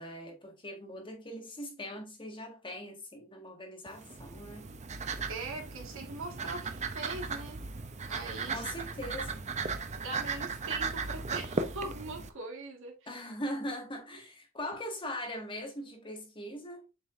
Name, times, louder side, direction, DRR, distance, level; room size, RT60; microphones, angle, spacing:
voice 1, 0.0-4.7 8.5-9.5 13.1-16.8, equal, 25° left, 1.6 m, -41 dB
sound 1, 3.9-12.3, right 4 dB, 35° right, 0.6 m, -37 dB
voice 2, 5.3-7.6 8.1-8.7 10.0-12.9, right 3 dB, 65° right, 1.7 m, -41 dB
7.5 x 5.0 x 2.5 m
head